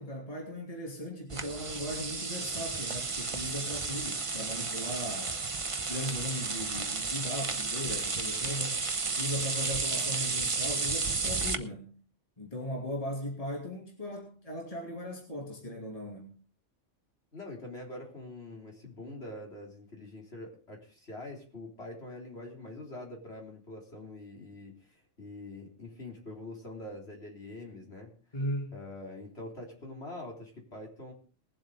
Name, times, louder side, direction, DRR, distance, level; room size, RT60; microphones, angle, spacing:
voice 1, 0.0-5.4 5.8-8.8 9.2-12.0 12.4-16.4 28.3-28.8, equal, 30° left, 0 dB, 2.8 m, -38 dB
sound 1, 1.3-11.6, right 4 dB, 30° right, 0.9 m, -33 dB
voice 2, 17.3-28.1 28.7-31.1, left 2 dB, 55° left, 0 dB, 4.1 m, -44 dB
20.5 x 7.9 x 4.9 m, 0.39 s
omnidirectional pair, 1.3 m